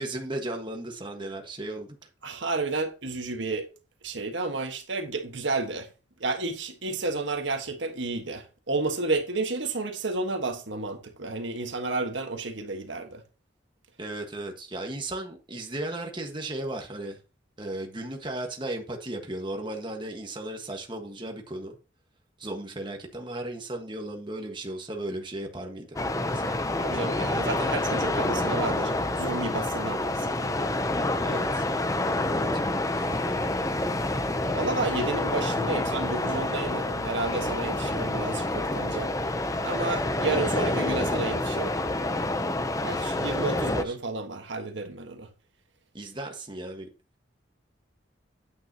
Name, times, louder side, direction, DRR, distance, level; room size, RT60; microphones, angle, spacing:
voice 1, 0.0-2.0 14.0-17.2 17.6-21.8 22.4-25.9 26.3-26.6 28.0-28.5 31.2-31.6 32.4-32.6 33.0-33.8 43.5-43.9 45.9-46.9, right 1 dB, 25° right, 1.5 m, -36 dB
voice 2, 2.2-3.7 4.0-5.9 6.2-13.2 26.8-30.5 34.5-39.1 39.6-41.7 42.8-45.3, right 3 dB, 75° right, 1.4 m, -31 dB
sound 1, 26.0-43.8, left 2 dB, 15° left, 0.6 m, -28 dB
9.3 x 9.0 x 2.9 m
head